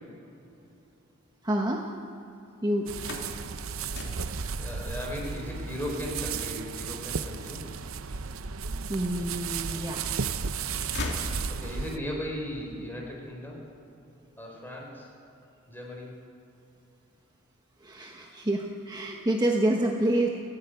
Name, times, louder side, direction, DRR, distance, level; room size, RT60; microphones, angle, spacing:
voice 1, 1.4-1.9 2.6-2.9 8.9-10.1 17.8-20.3, right 1 dB, 20° right, 1 dB, 1.2 m, -27 dB
sound 1, 2.7-8.7 9.3-10.1 10.4-12.0, left 2 dB, 55° left, 2.9 m, -40 dB
sound 2, 2.9-12.0, right 5 dB, 70° right, 0.8 m, -34 dB
voice 2, 4.6-7.6 11.5-13.6 14.4-15.1 15.7-16.2, left 1 dB, 10° left, -1 dB, 4.4 m, -37 dB
30.0 x 10.0 x 9.2 m, 3.0 s
head